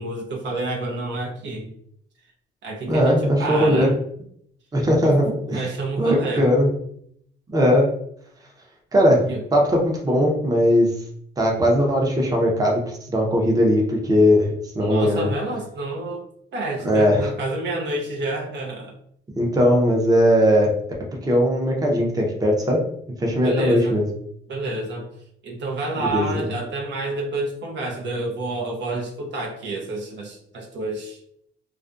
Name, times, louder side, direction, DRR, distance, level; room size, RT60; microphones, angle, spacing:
voice 1, 0.0-1.7 2.6-4.0 5.0-5.1 5.5-6.5 9.3-9.4 14.8-16.2 16.5-18.9 23.4-24.0 24.5-25.1 25.4-31.2, right 2 dB, 65° right, -1 dB, 0.6 m, -29 dB
voice 2, 2.9-3.9 4.7-5.7 6.0-6.7 7.5-7.9 8.9-9.2 9.5-10.9 11.4-15.3 16.8-17.3 19.4-20.7 21.2-22.8 23.2-24.0 26.0-26.4, equal, 20° right, 0 dB, 0.6 m, -19 dB
2.4 x 2.2 x 2.5 m, 0.69 s
cardioid pair, 90°, 20 cm